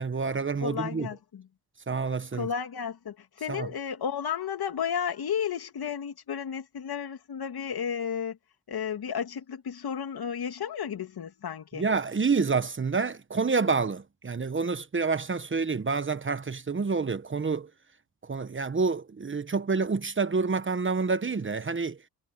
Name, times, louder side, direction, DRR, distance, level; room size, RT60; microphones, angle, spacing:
voice 1, 0.0-1.1 1.9-2.5 3.5-3.7 11.7-17.7 18.2-22.0, right 4 dB, 30° right, 1.2 m, -28 dB
voice 2, 0.6-1.4 2.3-8.4 8.7-11.8, left 7 dB, 65° left, 2.6 m, -33 dB
cardioid pair, 80°, 40 cm